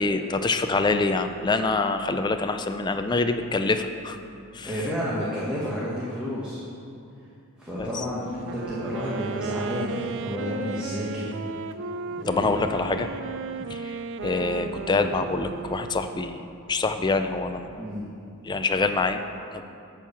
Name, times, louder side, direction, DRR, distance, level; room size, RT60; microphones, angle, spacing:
voice 1, 0.0-4.2 4.5-4.7 7.8-7.9 12.3-13.1 13.6-17.8 18.4-19.2 19.5-19.6, left 3 dB, 20° left, 7 dB, 0.4 m, -26 dB
voice 2, 4.6-6.6 7.6-11.4 12.1-12.6 17.7-18.1, equal, 5° right, -8 dB, 1.3 m, -31 dB
Wind instrument woodwind instrument, 8.3-16.4, right 5 dB, 55° right, 0.3 m, -35 dB
10.5 x 4.6 x 7.0 m, 2.6 s
head